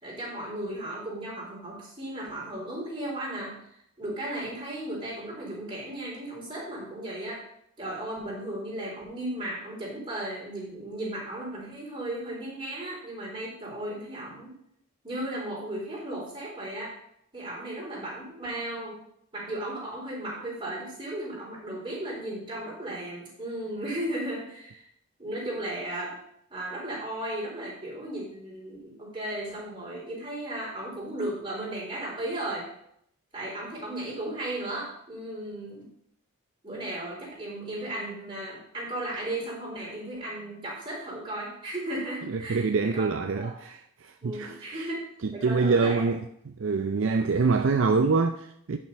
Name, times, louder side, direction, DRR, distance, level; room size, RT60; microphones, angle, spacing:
voice 1, 0.0-3.6 4.0-7.4 7.8-14.6 15.0-16.9 17.3-19.0 19.3-24.9 25.2-26.2 26.5-32.7 33.3-35.9 36.6-43.5 44.2-46.1 47.2-47.5, right 1 dB, 25° right, 4.0 m, -35 dB
voice 2, 42.3-44.9 45.4-46.2 46.5-48.8, right 4 dB, 60° right, 0.4 m, -25 dB
11.0 x 6.1 x 4.6 m
head